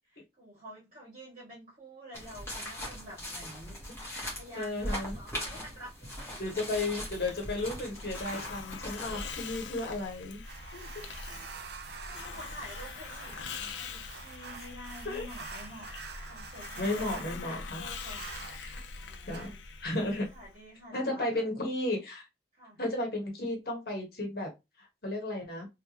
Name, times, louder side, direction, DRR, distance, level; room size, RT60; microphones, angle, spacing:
voice 1, 0.1-3.8 4.3-6.6 10.7-11.5 11.8-13.3 13.8-18.3 18.7-19.6 20.0-21.5 22.6-22.8, equal, 40° right, -6 dB, 2.0 m, -49 dB
sound 1, 2.1-9.3, equal, 15° left, 1.6 m, -40 dB
voice 2, 4.1-5.2 6.4-10.4 10.7-10.9 15.0-15.3 16.8-17.8 18.5-18.8 19.3-19.5 19.8-20.3 20.9-22.2 22.8-24.5 24.8-25.7, left 2 dB, 55° left, 0 dB, 1.4 m, -34 dB
Hiss, 7.1-20.6, left 4 dB, 85° left, 0.6 m, -43 dB
sound 2, 10.4-17.3 18.0-18.6 19.3-19.5, right 5 dB, 60° right, 0.6 m, -46 dB
3.4 x 3.3 x 3.0 m, 0.22 s
head